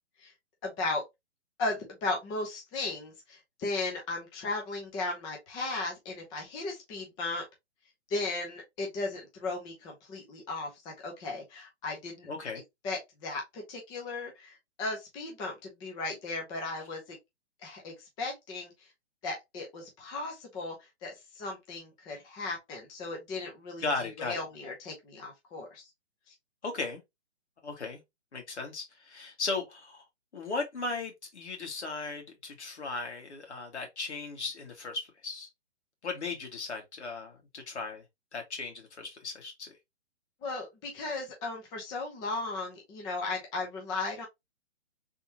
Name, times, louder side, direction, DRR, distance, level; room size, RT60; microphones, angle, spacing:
voice 1, 0.6-1.0 1.6-7.4 8.1-12.3 12.8-17.2 17.6-18.9 19.2-23.8 24.2-25.9 26.3-26.4 40.4-44.3, left 3 dB, 10° left, 0.6 m, -36 dB
voice 2, 12.3-12.6 23.8-24.4 26.6-27.0 27.6-28.0 28.3-30.0 30.3-35.5 36.0-38.0 38.3-39.8, left 3 dB, 70° left, 1.8 m, -36 dB
3.5 x 3.0 x 2.9 m
hypercardioid pair, 140°, 35 cm